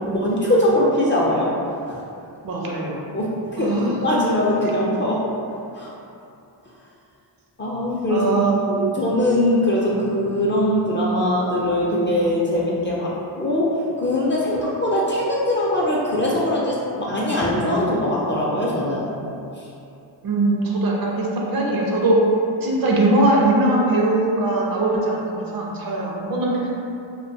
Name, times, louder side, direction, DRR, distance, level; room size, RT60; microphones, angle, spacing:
voice 1, 0.1-1.5 1.9-2.0 3.1-5.2 5.7-5.9 7.6-8.3 8.7-19.1, left 1 dB, 25° left, -5 dB, 0.4 m, -21 dB
voice 2, 2.4-3.0 3.6-3.9 8.1-8.6 20.2-22.2 22.6-26.7, right 2 dB, 50° right, -3 dB, 0.6 m, -21 dB
2.4 x 2.2 x 2.7 m, 2.6 s
cardioid pair, 70°, 45 cm